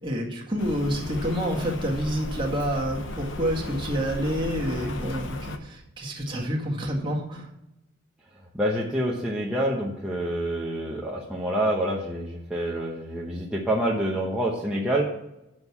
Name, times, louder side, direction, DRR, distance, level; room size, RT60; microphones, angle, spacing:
voice 1, 0.0-7.5, equal, 25° right, -2 dB, 1.9 m, -28 dB
Rain, 0.6-5.6, left 2 dB, 70° left, 0.9 m, -36 dB
voice 2, 8.5-15.1, right 1 dB, 5° right, -5 dB, 1.0 m, -27 dB
7.7 x 6.3 x 7.2 m, 0.90 s
head